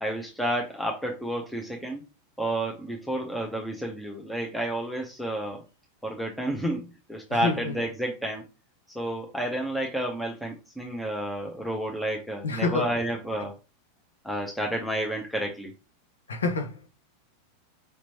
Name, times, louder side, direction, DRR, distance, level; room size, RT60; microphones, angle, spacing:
voice 1, 0.0-2.0 2.4-5.6 6.0-8.4 8.9-13.6 14.2-15.7, right 1 dB, 5° left, 0.8 m, -30 dB
voice 2, 7.4-7.7 12.4-12.9 16.3-16.9, left 3 dB, 80° left, 0.8 m, -27 dB
5.2 x 3.0 x 2.8 m
figure-of-eight pair, 90°, 0 cm